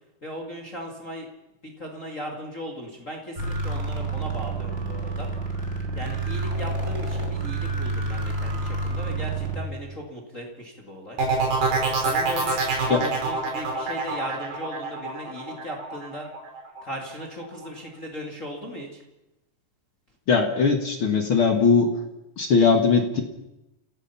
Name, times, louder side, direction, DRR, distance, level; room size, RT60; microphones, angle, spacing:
voice 1, 0.2-1.3 1.6-5.3 5.9-11.2 12.0-16.3 16.8-19.0, equal, 25° left, 0 dB, 2.2 m, -37 dB
sound 1, 3.4-9.6, right 2 dB, 15° right, 3.1 m, -29 dB
sound 2, 11.2-16.8 17.2-17.7, right 4 dB, 70° right, 6.5 m, -26 dB
voice 2, 20.3-21.9 22.4-23.2, left 5 dB, 50° left, 5 dB, 1.7 m, -20 dB
27.5 x 17.0 x 5.8 m, 0.94 s
omnidirectional pair, 4.2 m